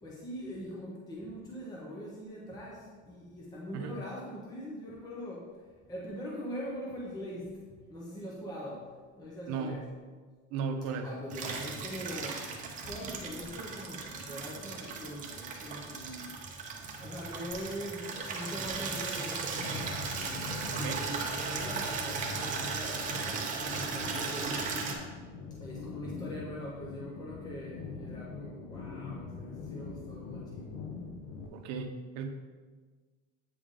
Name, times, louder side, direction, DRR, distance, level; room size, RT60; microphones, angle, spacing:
voice 1, 0.0-9.9 11.0-12.5 12.8-16.4 17.0-20.2 20.7-23.1 23.7-24.6 25.6-30.8, equal, 10° left, -4 dB, 0.6 m, -42 dB
voice 2, 9.5-9.8 10.5-11.1 20.7-21.0 31.5-32.3, right 5 dB, 60° right, 5 dB, 0.7 m, -35 dB
Water tap faucet / Liquid, 11.3-25.0, right 4 dB, 25° right, 0.6 m, -37 dB
sound 1, 19.6-31.5, left 4 dB, 60° left, 0.7 m, -44 dB
8.3 x 3.5 x 3.6 m, 1.4 s
cardioid pair, 170°, 31 cm